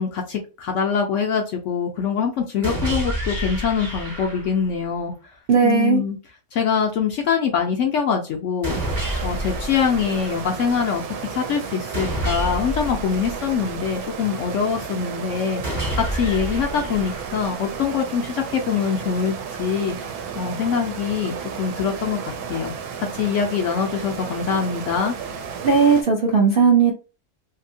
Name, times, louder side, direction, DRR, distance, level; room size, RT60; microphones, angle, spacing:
voice 1, 0.0-5.1 5.6-6.2 6.5-8.8 9.2-11.0 11.3-22.7 23.0-25.1, left 6 dB, 70° left, 2 dB, 0.7 m, -24 dB
sound 1, 2.6-4.7 8.6-10.6 11.9-13.9 15.6-17.6, equal, 35° right, 0.8 m, -29 dB
voice 2, 5.5-6.0 25.6-26.9, right 6 dB, 60° right, -1 dB, 0.6 m, -16 dB
sound 2, 8.7-26.0, right 6 dB, 75° right, 1.0 m, -33 dB
2.7 x 2.6 x 2.6 m, 0.33 s
omnidirectional pair, 1.6 m